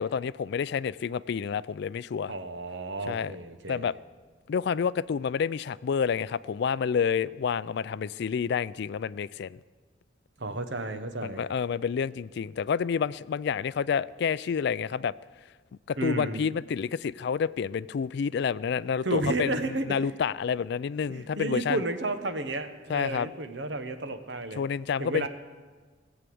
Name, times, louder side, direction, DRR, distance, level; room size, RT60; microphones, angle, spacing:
voice 1, 0.0-2.3 3.1-3.4 3.7-3.9 4.5-9.6 11.2-15.1 15.9-21.8 22.9-23.3 24.6-25.3, left 6 dB, 60° left, 18 dB, 0.3 m, -29 dB
voice 2, 2.3-3.9 10.4-11.4 16.0-16.4 19.0-20.0 21.1-24.6 25.0-25.3, right 2 dB, 65° right, 8 dB, 1.1 m, -32 dB
17.5 x 8.1 x 7.7 m, 1.4 s
head